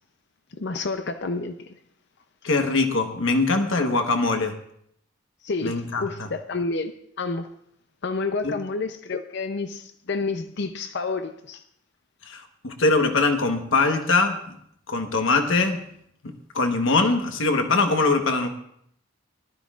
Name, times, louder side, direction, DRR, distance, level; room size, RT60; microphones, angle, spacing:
voice 1, 0.6-1.7 5.4-6.9 7.2-7.5 8.0-11.6, left 3 dB, 60° left, 0.6 m, -29 dB
voice 2, 2.4-4.5 5.6-6.1 8.4-8.5 12.3-14.5 14.9-15.9 16.2-18.5, left 3 dB, 90° left, 1.2 m, -22 dB
19.5 x 12.5 x 2.5 m
head